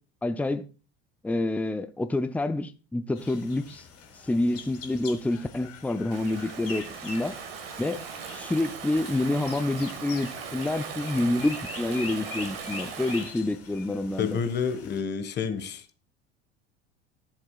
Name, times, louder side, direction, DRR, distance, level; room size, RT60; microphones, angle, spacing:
voice 1, 0.2-0.7 1.2-3.8 4.2-7.4 7.8-8.0 8.3-14.4, left 2 dB, 5° left, 0.7 m, -28 dB
sound 1, 3.1-15.0, left 5 dB, 50° left, 3.6 m, -44 dB
Stream / Ocean, 6.1-13.4, right 7 dB, 65° right, 1.5 m, -39 dB
voice 2, 14.2-15.8, left 6 dB, 35° left, 1.4 m, -29 dB
13.5 x 7.4 x 2.4 m
figure-of-eight pair, 65°, 31 cm